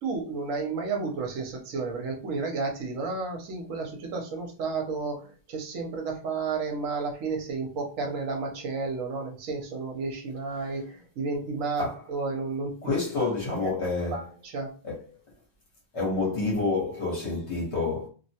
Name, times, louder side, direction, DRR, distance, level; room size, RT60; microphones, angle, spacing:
voice 1, 0.0-12.8 14.1-14.7, right 4 dB, 75° right, 1.0 m, -32 dB
voice 2, 12.8-14.3 14.8-15.0 15.9-18.1, left 3 dB, 55° left, 1.3 m, -28 dB
2.7 x 2.1 x 2.7 m
omnidirectional pair, 1.4 m